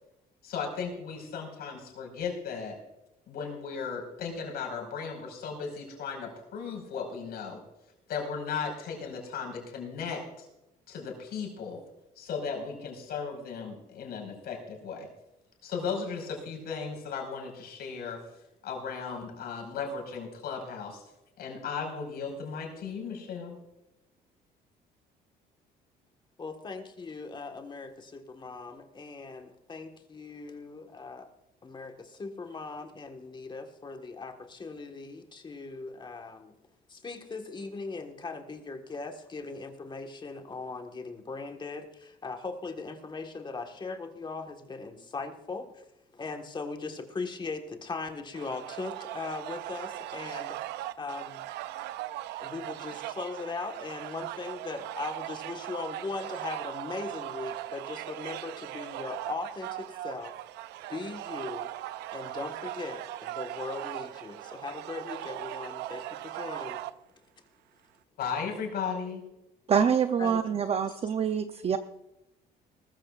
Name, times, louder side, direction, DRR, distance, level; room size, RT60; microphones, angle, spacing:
voice 1, 0.4-2.8 3.3-7.6 8.1-10.5 10.9-11.8 12.1-15.1 15.6-18.2 18.6-21.0 21.4-23.6 68.2-69.2 71.4-71.5, left 5 dB, 70° left, 1 dB, 5.1 m, -36 dB
voice 2, 26.4-31.3 31.6-36.5 36.9-45.9 46.1-50.6 51.0-51.4 52.4-60.3 60.9-61.7 62.1-66.8 70.2-70.5 70.9-71.0, left 3 dB, 25° left, 5 dB, 1.5 m, -39 dB
sound 1, 48.3-66.9, right 14 dB, 85° right, 0.5 m, -39 dB
voice 3, 69.7-71.8, right 7 dB, 35° right, 8 dB, 0.6 m, -26 dB
19.5 x 14.0 x 2.5 m, 0.91 s
cardioid pair, 110°, 17 cm